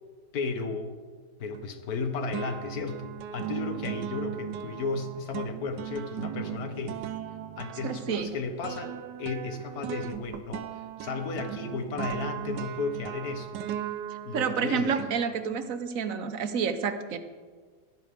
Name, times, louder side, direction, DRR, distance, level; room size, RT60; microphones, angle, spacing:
voice 1, 0.3-1.0 1.4-7.0 7.6-13.6 14.2-14.9, left 4 dB, 60° left, 7 dB, 1.4 m, -34 dB
sound 1, 1.5-2.0 2.3-15.7, right 10 dB, 75° right, 1.2 m, -38 dB
voice 2, 7.8-8.4 14.3-17.2, right 6 dB, 55° right, 10 dB, 1.1 m, -29 dB
16.0 x 12.5 x 3.5 m, 1.5 s
omnidirectional pair, 1.9 m